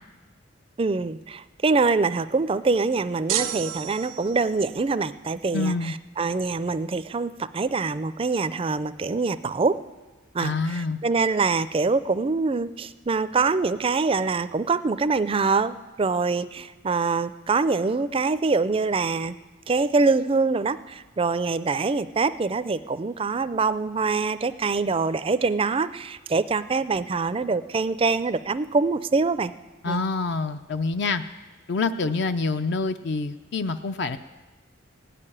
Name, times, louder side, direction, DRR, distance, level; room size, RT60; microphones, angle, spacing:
voice 1, 0.8-9.8 10.3-19.4 19.7-29.5 29.9-30.0, right 4 dB, 25° right, 13 dB, 0.4 m, -24 dB
sound 1, 3.3-4.6, right 11 dB, 80° right, 0.7 m, -30 dB
voice 2, 5.5-5.9 10.4-11.0 29.8-31.2 31.7-34.2, left 3 dB, 55° left, 9 dB, 0.5 m, -26 dB
16.0 x 6.7 x 9.9 m, 1.2 s
head